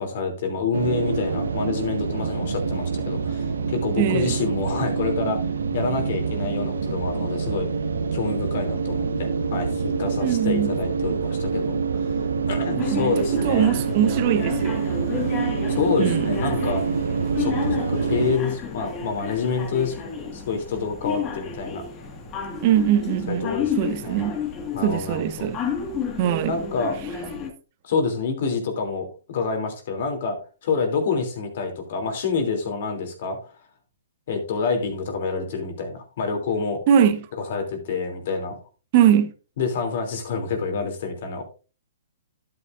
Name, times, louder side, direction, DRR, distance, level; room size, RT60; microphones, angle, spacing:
voice 1, 0.0-5.4 5.7-7.7 8.1-13.8 15.7-16.8 17.4-21.8 23.3-23.8 24.0-24.2 24.7-25.5 26.4-26.9 27.8-33.5 34.3-36.8 37.5-38.6 39.6-41.4, left 4 dB, 55° left, 3.0 m, -27 dB
sound 1, 0.7-18.4, right 5 dB, 85° right, 1.1 m, -26 dB
voice 2, 4.0-4.3 10.2-10.7 12.8-14.9 15.3-15.4 16.0-16.3 22.6-24.4 24.8-25.6 26.2-26.6 36.9-37.3 38.9-39.3, right 9 dB, 45° right, 1.1 m, -21 dB
sound 2, 12.8-27.5, left 6 dB, 25° left, 1.9 m, -32 dB
12.0 x 8.4 x 2.6 m
hypercardioid pair, 135°, 0 cm